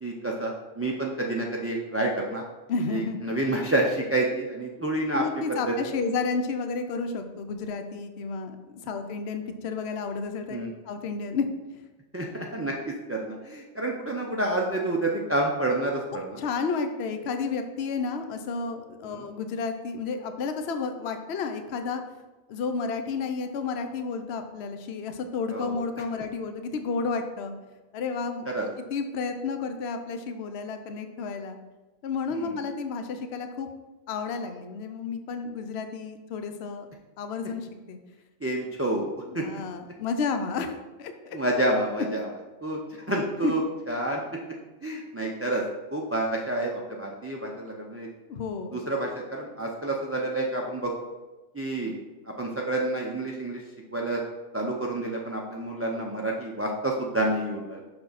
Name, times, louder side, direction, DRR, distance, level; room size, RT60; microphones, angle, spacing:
voice 1, 0.0-2.4 2.9-5.2 5.7-5.8 10.5-10.7 12.1-16.4 19.0-19.2 25.5-25.8 28.5-28.6 32.3-32.6 38.4-39.6 41.3-42.3 42.6-43.6 43.9-44.2 44.8-45.6 45.9-48.1 48.7-50.9 51.5-52.0 52.3-53.6 53.9-54.2 54.5-57.8, right 2 dB, 15° right, -1 dB, 0.5 m, -29 dB
voice 2, 2.7-3.3 4.8-8.6 8.8-10.6 10.9-11.5 16.4-22.0 22.5-27.5 27.9-28.4 28.9-31.6 32.0-33.7 34.1-36.9 37.2-38.0 39.3-40.7 41.0-41.4 43.4-43.5 48.3-48.8, left 4 dB, 55° left, 7 dB, 0.9 m, -31 dB
6.7 x 6.0 x 4.1 m, 1.2 s
omnidirectional pair, 1.4 m